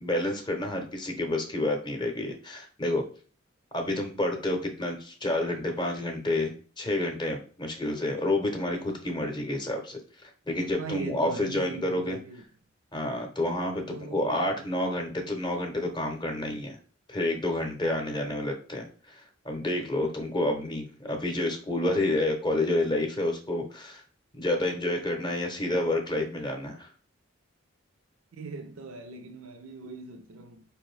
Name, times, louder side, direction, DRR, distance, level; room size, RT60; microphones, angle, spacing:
voice 1, 0.0-3.0 3.7-12.2 12.9-16.8 17.1-24.0 24.3-26.9, left 1 dB, 20° left, 0.7 m, -29 dB
voice 2, 10.8-12.4 13.9-14.8 18.2-18.4 28.3-30.6, right 3 dB, 80° right, 0.5 m, -41 dB
4.8 x 2.6 x 3.2 m
head